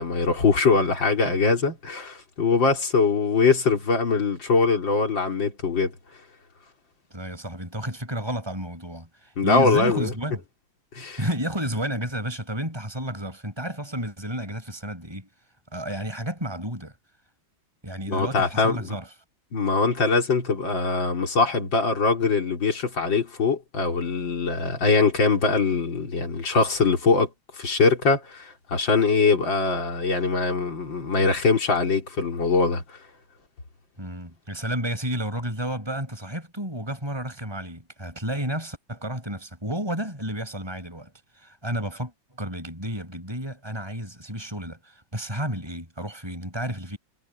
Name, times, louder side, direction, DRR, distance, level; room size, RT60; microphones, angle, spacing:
voice 1, 0.0-5.9 9.4-10.1 11.0-11.2 18.1-18.8 19.5-27.3 27.6-33.0, left 4 dB, 90° left, 4.3 m, -22 dB
voice 2, 7.1-10.4 11.2-15.3 15.7-16.9 17.8-19.1 34.0-42.1 42.4-47.0, right 1 dB, 15° right, 7.1 m, -31 dB
omnidirectional pair, 2.0 m